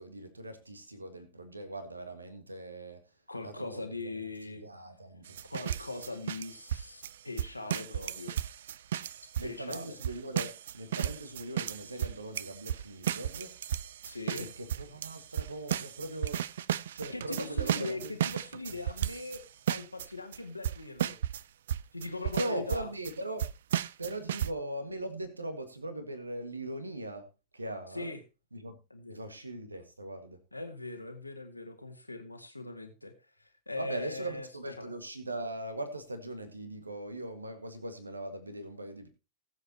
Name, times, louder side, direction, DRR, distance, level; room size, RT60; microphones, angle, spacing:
voice 1, 0.0-3.0 3.4-4.1 4.4-5.4 9.4-13.6 14.4-16.4 16.9-18.1 22.4-23.4 24.0-27.3 27.5-28.2 28.5-28.8 29.1-30.4 33.8-39.1, right 1 dB, 80° right, 10 dB, 1.7 m, -40 dB
voice 2, 3.3-4.6 5.4-8.3 9.2-10.0 14.0-14.5 17.1-19.4 19.7-21.2 21.9-22.9 27.9-28.2 28.9-29.2 30.5-33.1 33.4-34.5 34.8-34.9, left 2 dB, 85° left, 6 dB, 1.6 m, -40 dB
sound 1, 5.3-19.4 19.7-20.1 20.3-20.4 20.6-21.4 21.7-23.1 23.4-24.5, right 10 dB, 60° right, 0.5 m, -34 dB
20.0 x 7.9 x 2.9 m, 0.27 s
figure-of-eight pair, 90°, 0 cm